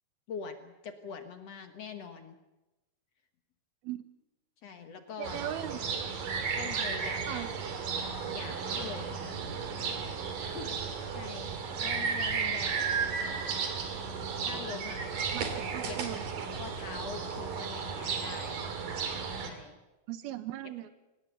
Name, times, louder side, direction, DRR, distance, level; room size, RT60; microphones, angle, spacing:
voice 1, 0.3-2.4 4.6-5.4 6.6-7.5 8.3-9.2 10.4-12.9 14.4-15.4 15.8-16.2 16.6-18.7 19.4-19.8, left 5 dB, 60° left, 8 dB, 1.9 m, -43 dB
sound 1, 5.2-19.5, right 6 dB, 65° right, 4.0 m, -34 dB
voice 2, 5.2-5.8 7.3-7.5 15.3-16.2 20.1-20.9, right 12 dB, 90° right, 12 dB, 3.1 m, -38 dB
24.5 x 19.0 x 8.2 m, 1.0 s
omnidirectional pair, 4.3 m